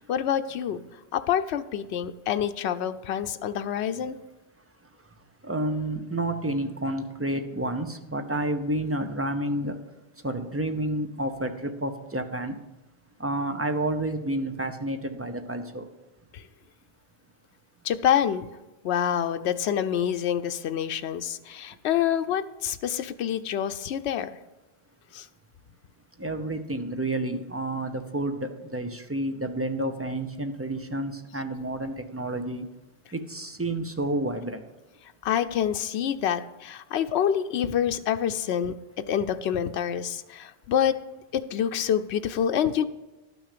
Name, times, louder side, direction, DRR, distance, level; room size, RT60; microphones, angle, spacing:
voice 1, 0.1-0.8 1.1-4.2 16.3-16.4 17.8-18.5 18.8-24.3 25.1-25.3 35.2-38.7 39.1-41.0 41.3-42.8, left 9 dB, 80° left, 9 dB, 0.9 m, -27 dB
voice 2, 5.4-9.8 10.2-12.6 13.2-15.9 26.2-32.7 33.1-34.6, right 1 dB, 15° right, 6 dB, 0.7 m, -30 dB
12.0 x 6.3 x 6.7 m, 1.0 s
omnidirectional pair, 1.1 m